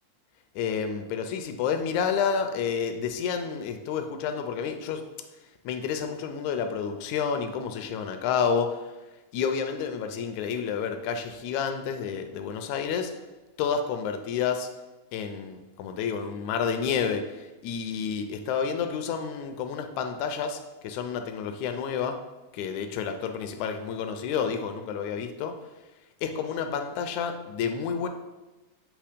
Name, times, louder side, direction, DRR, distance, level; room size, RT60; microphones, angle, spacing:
voice 1, 0.6-5.0 5.7-8.8 9.3-13.1 13.6-14.7 15.1-22.2 22.5-25.6 26.2-28.1, left 6 dB, 80° left, 7 dB, 1.8 m, -30 dB
8.4 x 3.0 x 5.0 m, 1.1 s
omnidirectional pair, 3.5 m